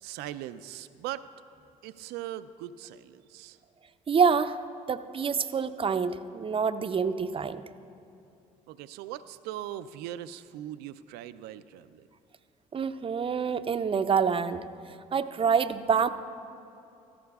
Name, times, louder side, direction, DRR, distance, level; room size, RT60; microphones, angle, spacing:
voice 1, 0.0-1.2 1.8-3.6 8.7-12.1, right 12 dB, 80° right, 14 dB, 0.4 m, -40 dB
voice 2, 4.1-4.6 4.9-7.6 12.7-14.6 15.1-16.1, right 6 dB, 35° right, 11 dB, 0.5 m, -26 dB
16.0 x 13.5 x 2.3 m, 2.7 s
supercardioid pair, 65°, 16 cm